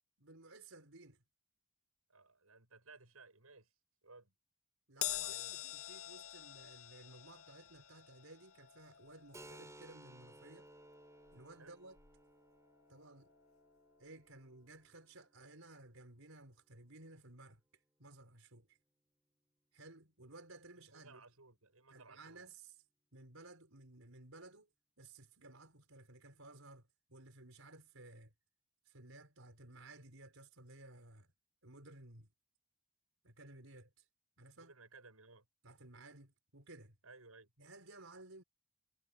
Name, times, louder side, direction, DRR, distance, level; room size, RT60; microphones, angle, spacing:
voice 1, 0.2-1.2 4.9-10.7 11.3-12.0 12.9-13.3 14.0-18.8 19.7-21.2 21.9-22.8 23.1-24.7 25.0-28.3 28.8-31.3 31.6-32.3 33.2-34.1 34.4-34.7 35.6-37.0 37.6-38.4, right 2 dB, 70° right, 5.8 m, -57 dB
voice 2, 2.1-3.7 4.0-4.3 5.2-5.6 11.6-11.8 20.8-22.4 34.6-35.4 37.0-37.5, right 3 dB, 85° right, 7.9 m, -59 dB
Crash cymbal, 5.0-11.6 12.0-12.2 13.2-13.3, left 13 dB, 75° left, 2.4 m, -46 dB
Keyboard (musical), 9.3-16.7, right 1 dB, 15° right, 4.5 m, -60 dB
head